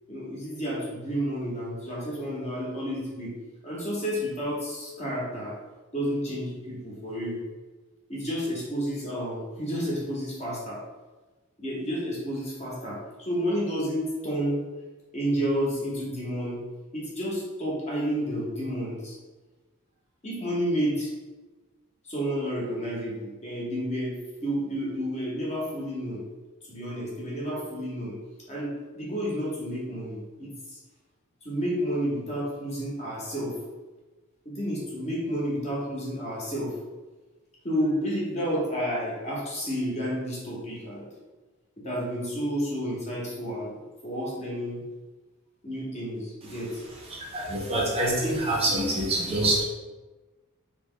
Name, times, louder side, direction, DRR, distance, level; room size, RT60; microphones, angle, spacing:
voice 1, 0.1-3.3 3.6-5.6 5.9-7.4 8.1-10.8 11.6-14.6 15.1-16.6 16.9-19.2 20.2-21.1 22.0-26.2 26.7-28.1 28.5-30.8 31.4-33.6 34.4-36.7 37.6-41.1 41.8-44.8 45.6-46.8, equal, 30° left, -5 dB, 0.9 m, -30 dB
voice 2, 47.1-49.6, right 1 dB, 30° right, -3 dB, 0.5 m, -26 dB
3.0 x 2.1 x 3.7 m, 1.2 s
head